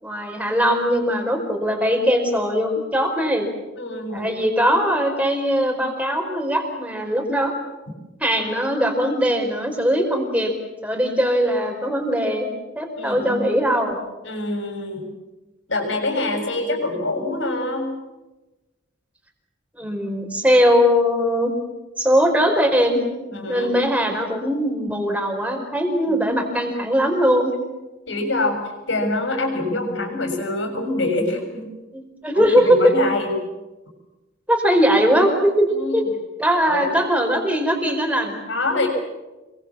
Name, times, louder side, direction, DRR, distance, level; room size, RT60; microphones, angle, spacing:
voice 1, 0.0-3.5 4.1-7.5 8.2-10.5 10.8-12.5 12.7-14.0 19.8-21.5 22.0-23.0 23.5-27.5 31.9-32.9 34.5-36.0 36.4-38.4, equal, 5° right, 3 dB, 4.6 m, -20 dB
voice 2, 3.8-4.3 13.0-13.5 14.2-15.1 15.7-17.9 23.3-23.7 26.1-26.3 28.1-28.6 28.9-31.7 32.3-33.3 35.7-36.0 36.7-36.9 38.5-38.9, left 2 dB, 70° left, 4 dB, 6.9 m, -25 dB
27.0 x 23.0 x 7.5 m, 1.1 s
head